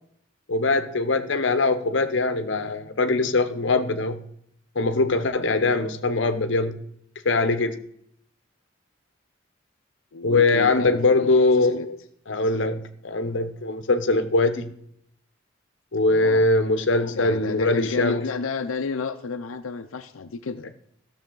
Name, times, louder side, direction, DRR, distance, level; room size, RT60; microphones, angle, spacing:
voice 1, 0.5-4.2 4.8-6.8 7.2-7.8 10.2-12.0 12.3-14.7 15.9-18.3, left 3 dB, 65° left, 0.8 m, -22 dB
voice 2, 10.1-11.9 16.1-16.5 17.1-20.6, left 4 dB, 90° left, 0.5 m, -32 dB
14.5 x 6.6 x 3.8 m
head